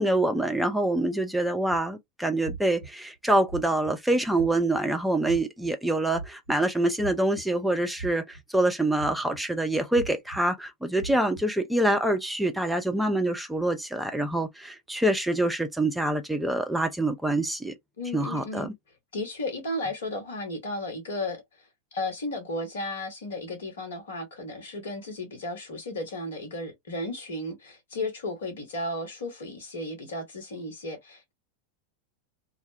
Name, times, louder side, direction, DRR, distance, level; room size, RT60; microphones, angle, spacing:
voice 1, 0.0-17.7 18.1-18.7, right 1 dB, 5° right, 0.5 m, -26 dB
sound 1, 1.7-1.9 2.4-2.9 3.5-3.9 4.3-4.8 5.2-5.7 6.1-6.6 7.0-7.6 8.0-8.4 9.0-9.4 9.9-10.4 11.0-11.4, right 3 dB, 85° left, 0.7 m, -38 dB
voice 2, 18.0-18.7 19.1-31.3, left 1 dB, 60° left, 1.1 m, -34 dB
2.2 x 2.1 x 3.2 m
figure-of-eight pair, 90°, 0 cm